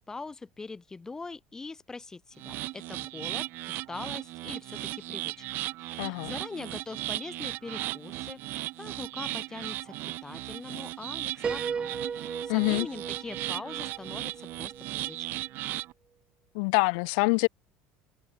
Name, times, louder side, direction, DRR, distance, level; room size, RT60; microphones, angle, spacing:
voice 1, 0.0-5.5 5.8-9.9 10.2-15.3, left 3 dB, 15° left, 1.8 m, -42 dB
sound 1, 2.4-15.9, right 18 dB, 55° right, 3.4 m, -36 dB
voice 2, 6.0-6.3 12.5-12.9 16.5-17.5, left 35 dB, 80° left, 1.2 m, -25 dB
Piano, 11.4-15.2, right 6 dB, 25° right, 3.2 m, -37 dB
cardioid pair, 135°, 4 cm